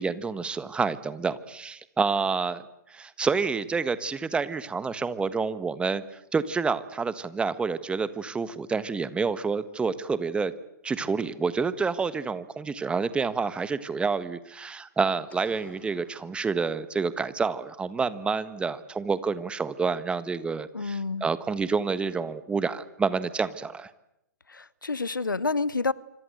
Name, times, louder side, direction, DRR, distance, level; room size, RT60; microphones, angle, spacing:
voice 1, 0.0-10.5 10.8-23.9, right 5 dB, 10° right, 1.4 m, -28 dB
sound 1, 15.3-17.2, left 4 dB, 15° left, 5.7 m, -55 dB
voice 2, 20.7-21.3 24.5-25.9, left 4 dB, 90° left, 1.1 m, -28 dB
26.5 x 25.5 x 8.0 m
figure-of-eight pair, 120°, 10 cm